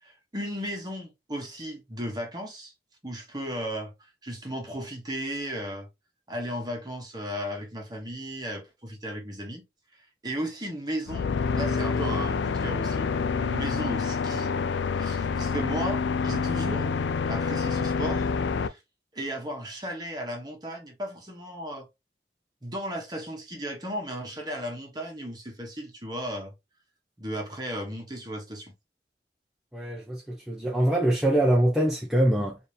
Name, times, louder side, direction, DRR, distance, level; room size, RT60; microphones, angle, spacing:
voice 1, 0.0-2.7 3.0-5.9 6.3-9.6 9.9-11.3 11.5-13.1 13.4-14.5 14.9-16.9 17.3-18.3 18.6-18.8 19.1-21.9 22.6-26.5 27.2-28.7, equal, 25° right, 1.1 m, -35 dB
sound 1, 11.1-18.7, left 5 dB, 90° left, 0.4 m, -27 dB
voice 2, 29.7-32.6, right 1 dB, 5° right, 0.5 m, -24 dB
4.1 x 2.6 x 3.2 m
head